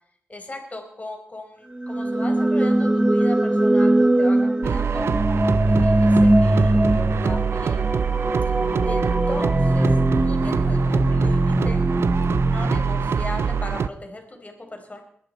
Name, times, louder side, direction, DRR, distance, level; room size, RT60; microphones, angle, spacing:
voice 1, 0.3-5.1 5.7-7.9 8.4-8.5 8.8-9.9 10.2-11.9 12.4-15.0, left 1 dB, 35° left, 3 dB, 4.6 m, -38 dB
sound 1, 1.8-13.7, right 1 dB, 20° right, 1.2 m, -21 dB
sound 2, 4.6-13.9, right 7 dB, 75° right, 0.6 m, -25 dB
21.5 x 11.0 x 4.4 m, 0.65 s
cardioid pair, 45°, 4 cm